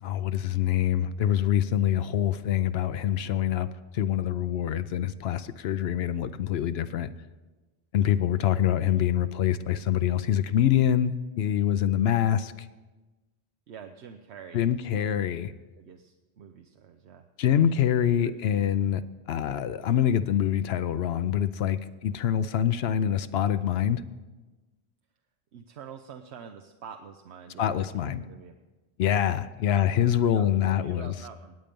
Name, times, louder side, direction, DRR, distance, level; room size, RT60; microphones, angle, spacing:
voice 1, 0.0-7.1 7.9-12.7 14.5-15.5 17.4-24.0 27.6-28.2 29.0-31.1, left 10 dB, 75° left, 13 dB, 0.8 m, -25 dB
voice 2, 13.7-15.2 15.8-17.8 18.2-18.6 25.5-28.5 29.7-29.9 30.3-31.6, right 7 dB, 85° right, 6 dB, 1.0 m, -46 dB
18.5 x 8.9 x 5.2 m, 1.2 s
omnidirectional pair, 1.1 m